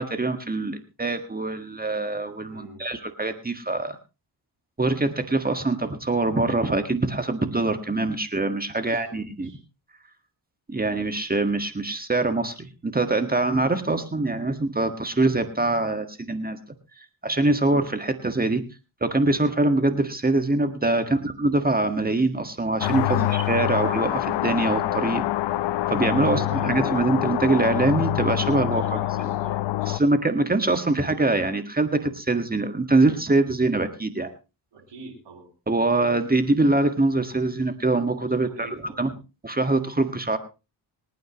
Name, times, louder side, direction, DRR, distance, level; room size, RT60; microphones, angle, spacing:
voice 1, 0.0-4.0 4.8-9.5 10.7-16.6 17.0-18.6 19.0-25.3 25.9-29.0 29.9-34.3 35.7-38.7 39.0-39.1 39.4-40.4, right 2 dB, 20° right, 8 dB, 1.7 m, -24 dB
voice 2, 2.5-2.9 8.7-9.2 9.4-9.6 20.9-21.2 23.2-23.3 26.2-26.8 28.7-30.0 34.7-35.5 38.4-39.0, right 3 dB, 80° right, 2 dB, 6.8 m, -45 dB
sound 1, 22.8-30.0, left 14 dB, 80° left, 0.7 m, -25 dB
25.5 x 9.3 x 3.0 m, 0.30 s
cardioid pair, 80°, 42 cm